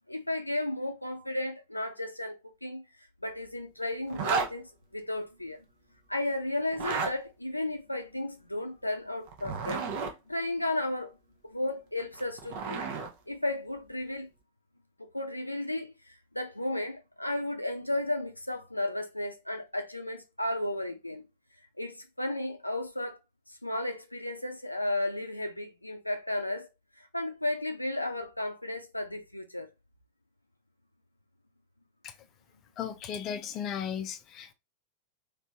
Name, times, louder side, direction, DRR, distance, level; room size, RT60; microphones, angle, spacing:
voice 1, 0.1-2.8 3.2-5.6 6.1-9.8 10.3-11.2 11.4-12.8 13.3-14.3 15.0-21.3 21.8-23.2 23.5-26.7 27.0-29.7, left 1 dB, 85° left, 0.5 m, -34 dB
Zipper (clothing), 4.1-4.5 6.7-7.1 9.3-10.1 12.0-13.1, right 5 dB, 50° right, 0.8 m, -32 dB
voice 2, 32.8-34.5, left 8 dB, 35° left, 0.5 m, -35 dB
3.3 x 3.2 x 2.8 m
figure-of-eight pair, 90°, 0 cm